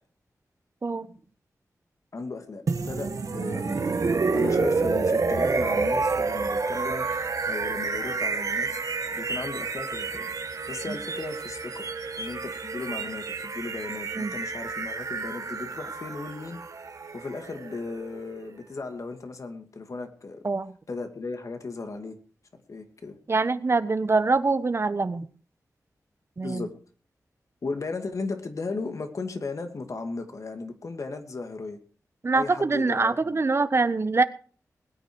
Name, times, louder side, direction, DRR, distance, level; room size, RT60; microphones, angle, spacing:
voice 1, 2.1-7.1 7.5-8.8 9.1-10.3 10.7-11.9 12.2-16.6 17.1-20.4 20.9-22.2 22.7-23.2 26.4-26.8 27.6-31.8 32.3-33.4, left 3 dB, 60° left, 6 dB, 2.5 m, -36 dB
sound 1, 2.7-18.5, right 4 dB, 65° right, 1.6 m, -29 dB
voice 2, 23.3-25.3 26.4-26.7 32.2-34.2, right 3 dB, 40° right, 13 dB, 1.1 m, -24 dB
21.0 x 9.5 x 4.7 m, 0.40 s
wide cardioid pair, 90°, 6 cm